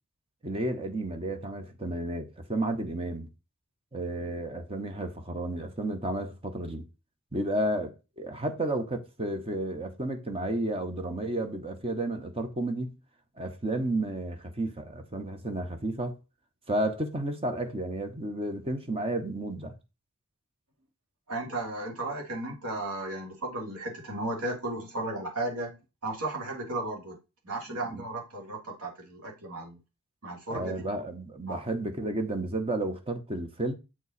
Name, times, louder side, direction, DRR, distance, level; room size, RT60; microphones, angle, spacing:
voice 1, 0.4-3.3 3.9-6.9 7.3-12.9 13.4-16.2 16.7-19.7 27.7-28.0 30.5-33.7, right 1 dB, 25° right, 1.0 m, -32 dB
voice 2, 21.3-27.2 27.4-29.8 30.2-30.8 31.5-31.6, right 2 dB, 75° right, 2.4 m, -35 dB
7.4 x 4.6 x 4.1 m
head